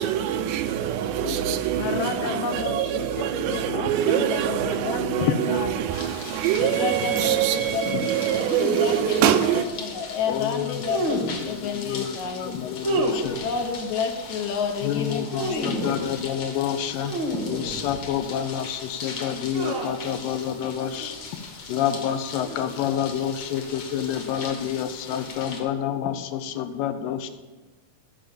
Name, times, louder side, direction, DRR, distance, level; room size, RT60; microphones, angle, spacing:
voice 1, 0.0-9.7, right 10 dB, 80° right, 2.2 m, -24 dB
voice 2, 1.2-4.4 4.8-5.4 5.7-5.8 6.8-6.9 7.9-8.0 10.3-13.4 14.8-21.2 21.7-27.3, left 9 dB, 90° left, 2.4 m, -29 dB
voice 3, 1.8-5.3 5.6-5.7 6.7-12.5 13.4-15.7, left 5 dB, 70° left, 2.0 m, -30 dB
sound 1, 5.9-25.6, left 4 dB, 50° left, 1.7 m, -40 dB
sound 2, 8.5-9.0 10.8-11.5 12.8-13.6 15.1-16.2 17.0-18.2 19.5-20.1 20.8-21.1 22.4-22.9 24.1-24.4, right 1 dB, 55° right, 1.3 m, -30 dB
13.5 x 5.3 x 7.2 m
omnidirectional pair, 3.9 m